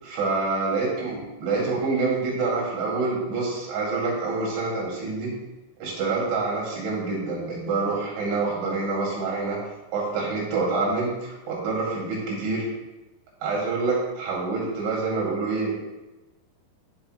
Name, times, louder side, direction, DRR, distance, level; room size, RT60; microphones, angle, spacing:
voice 1, 0.0-5.3 5.8-9.6 9.9-12.7 13.4-15.8, right 3 dB, 80° right, -4 dB, 4.8 m, -26 dB
17.0 x 6.0 x 2.2 m, 1.0 s
omnidirectional pair, 5.3 m